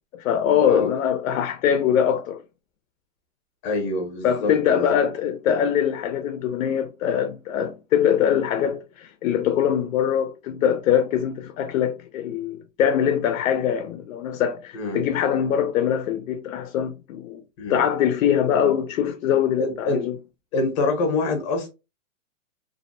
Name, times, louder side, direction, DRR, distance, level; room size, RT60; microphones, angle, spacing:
voice 1, 0.1-2.4 4.2-17.4 17.7-20.2, left 9 dB, 75° left, 0.5 m, -23 dB
voice 2, 3.6-4.9 14.7-15.0 17.6-17.8 18.4-18.5 19.6-20.0 20.5-21.7, left 2 dB, 25° left, 0.7 m, -25 dB
2.5 x 2.1 x 2.6 m
hypercardioid pair, 165°, 40 cm